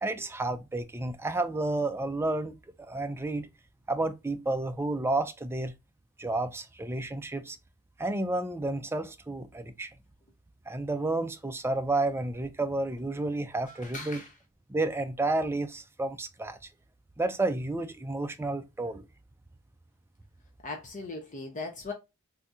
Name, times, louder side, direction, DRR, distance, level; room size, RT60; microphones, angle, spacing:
voice 1, 0.0-2.6 2.9-3.5 3.9-5.7 6.2-7.6 8.0-9.9 10.7-14.2 14.7-16.6 17.2-19.1, right 2 dB, 10° right, 0.4 m, -31 dB
voice 2, 13.7-14.3 20.6-21.9, left 3 dB, 35° left, 0.7 m, -39 dB
3.6 x 2.7 x 2.5 m
head